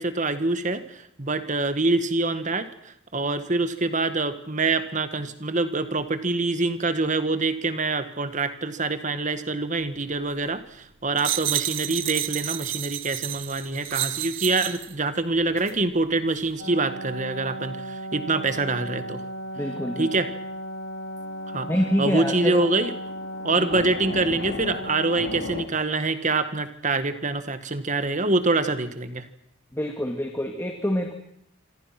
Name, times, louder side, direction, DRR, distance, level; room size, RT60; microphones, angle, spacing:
voice 1, 0.0-19.2 20.0-20.3 21.5-21.7 22.0-22.9 23.4-29.3, right 3 dB, 35° right, 10 dB, 1.8 m, -25 dB
sound 1, 11.2-14.9 15.6-15.8, right 13 dB, 70° right, 1.2 m, -30 dB
sound 2, 16.6-25.6, equal, 75° left, 3.6 m, -35 dB
voice 2, 19.5-20.1 21.7-22.7 23.5-23.7 29.7-31.1, equal, 10° left, 3 dB, 2.1 m, -26 dB
27.0 x 26.0 x 6.1 m, 0.73 s
head